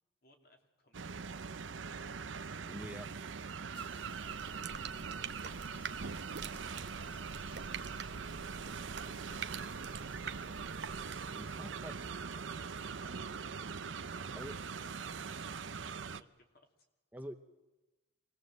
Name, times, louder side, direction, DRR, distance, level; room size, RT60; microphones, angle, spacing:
voice 1, 0.2-2.3 4.0-5.6 6.8-10.3 11.9-13.8 14.1-16.9, left 1 dB, 55° left, 3 dB, 3.1 m, -64 dB
sound 1, 0.9-16.2, right 5 dB, 85° right, 0.7 m, -42 dB
voice 2, 2.6-3.1 11.3-11.9 14.3-14.5 17.1-17.3, equal, 10° right, 7 dB, 0.8 m, -45 dB
sound 2, 3.7-12.2, left 5 dB, 30° left, 0.7 m, -62 dB
sound 3, 4.1-11.4, right 6 dB, 65° right, 1.0 m, -47 dB
25.0 x 19.0 x 7.8 m, 1.1 s
head